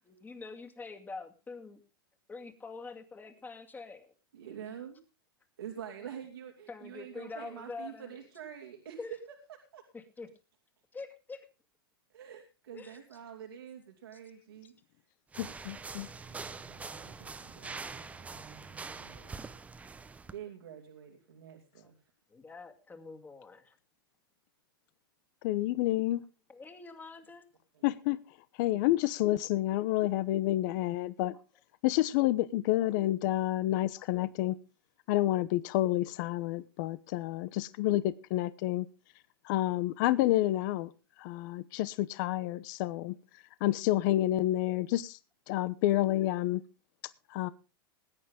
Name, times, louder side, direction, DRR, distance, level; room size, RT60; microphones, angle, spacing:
voice 1, 0.1-1.8 2.3-4.1 4.4-4.8 6.0-6.1 6.7-8.2 9.0-9.1 9.9-10.3 10.9-11.5 12.7-13.0 17.2-17.5 22.3-23.8 26.5-27.5 31.3-31.4 34.0-34.1, left 4 dB, 15° left, 6 dB, 2.3 m, -45 dB
voice 2, 4.3-5.0 5.6-9.0 9.5-9.8 12.1-14.7 16.2-19.5 20.3-22.0 27.7-27.8, right 9 dB, 90° right, 1 dB, 2.9 m, -47 dB
sound 1, 15.3-20.3, right 4 dB, 10° right, 0.8 m, -44 dB
voice 3, 15.4-16.1 25.4-26.2 27.8-28.2 28.6-31.3 31.8-34.6 35.1-38.9 39.4-40.9 41.2-43.2 43.6-45.2 45.5-46.6 47.3-47.5, left 15 dB, 55° left, 16 dB, 0.9 m, -29 dB
20.0 x 9.6 x 3.7 m, 0.31 s
hypercardioid pair, 125°, 12 cm